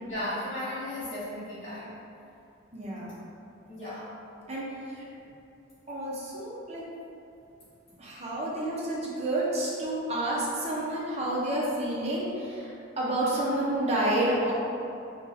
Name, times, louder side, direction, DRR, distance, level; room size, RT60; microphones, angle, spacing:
voice 1, 0.1-2.0 3.7-4.1, left 1 dB, 35° left, -13 dB, 0.7 m, -35 dB
voice 2, 2.7-3.2 4.5-5.1 5.9-6.9 8.0-14.5, right 1 dB, 30° right, -5 dB, 0.5 m, -30 dB
2.6 x 2.2 x 3.9 m, 2.7 s
head